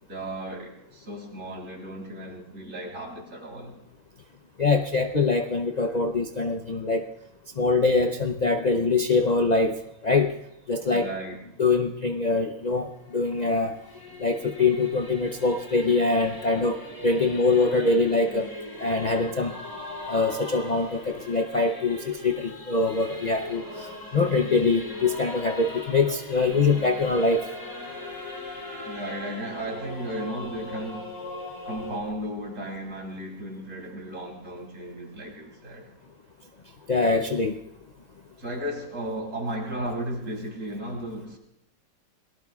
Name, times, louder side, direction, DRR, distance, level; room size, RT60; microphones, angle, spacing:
voice 1, 0.0-3.7 10.9-11.4 28.8-31.1 31.6-35.9 38.4-41.4, right 1 dB, 60° right, -1 dB, 3.8 m, -35 dB
voice 2, 4.6-7.1 7.6-9.8 10.0-10.3 10.7-11.1 11.6-13.8 14.2-16.8 17.0-18.5 18.8-19.5 20.1-27.4 36.9-37.6, left 3 dB, 40° left, 4 dB, 0.6 m, -23 dB
Singing / Musical instrument, 12.6-32.0, left 2 dB, 75° left, 4.2 m, -39 dB
29.5 x 18.0 x 2.4 m, 0.83 s
omnidirectional pair, 1.5 m